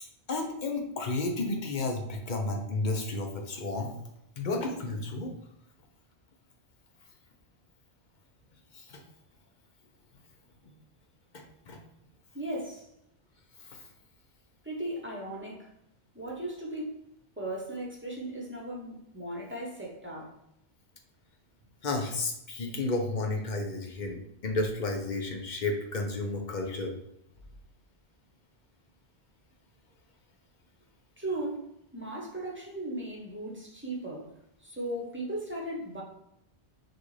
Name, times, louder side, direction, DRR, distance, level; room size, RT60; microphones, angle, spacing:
voice 1, 0.3-3.9 4.4-5.3 8.7-9.0 11.7-11.8 21.8-26.9, left 2 dB, 50° left, 3 dB, 0.8 m, -32 dB
voice 2, 12.3-12.9 14.6-15.7 16.1-17.1 17.4-20.4 31.2-34.3 34.6-36.0, right 1 dB, 10° right, -3 dB, 0.9 m, -37 dB
6.0 x 2.5 x 3.2 m, 0.80 s
omnidirectional pair, 1.1 m